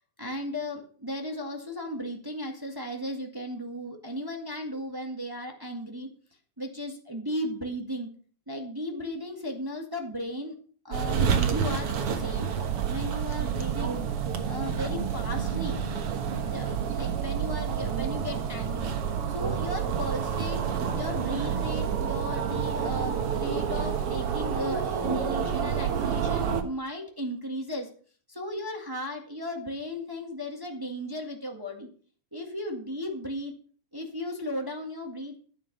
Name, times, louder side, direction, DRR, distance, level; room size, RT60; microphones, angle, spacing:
voice 1, 0.2-6.1 6.6-8.1 8.5-10.5 10.8-12.6 12.9-14.0 14.5-15.8 16.4-18.9 19.3-20.6 20.9-27.9 28.3-31.9 32.3-33.5 33.9-35.4, left 1 dB, 15° right, 2 dB, 0.7 m, -35 dB
sound 1, 10.9-26.6, right 7 dB, 55° right, 1.8 m, -29 dB
10.5 x 10.0 x 5.5 m, 0.43 s
omnidirectional pair, 4.0 m